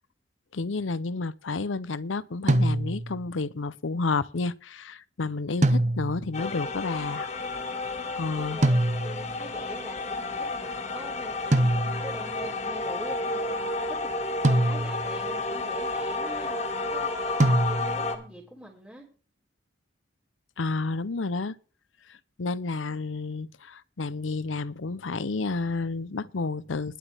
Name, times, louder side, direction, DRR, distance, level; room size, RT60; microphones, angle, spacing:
voice 1, 0.5-7.3 8.2-8.6 20.6-21.6 22.1-27.0, left 3 dB, 90° left, 0.7 m, -31 dB
sound 1, 2.5-3.2 5.6-6.4 8.6-9.4 11.5-12.3 14.4-15.2 17.4-18.2, right 1 dB, 40° right, 1.0 m, -24 dB
sound 2, 6.3-18.2, left 3 dB, 35° left, 1.8 m, -31 dB
voice 2, 7.6-19.0, equal, 5° right, 3.4 m, -44 dB
20.5 x 8.1 x 3.5 m
head